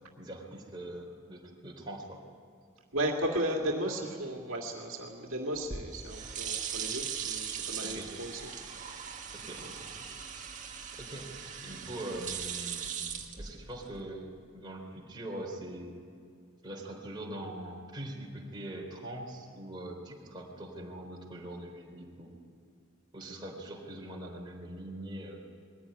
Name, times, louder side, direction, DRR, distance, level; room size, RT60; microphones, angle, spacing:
voice 1, 0.2-2.2 7.8-8.1 9.3-10.0 10.9-11.3 11.6-16.0 16.6-22.3 23.1-25.5, right 1 dB, 20° right, -2 dB, 3.8 m, -42 dB
voice 2, 2.9-9.1, right 1 dB, 70° right, 0 dB, 2.2 m, -35 dB
sound 1, 5.5-14.0, right 7 dB, 35° right, 1.9 m, -39 dB
21.5 x 15.5 x 9.9 m, 2.2 s
head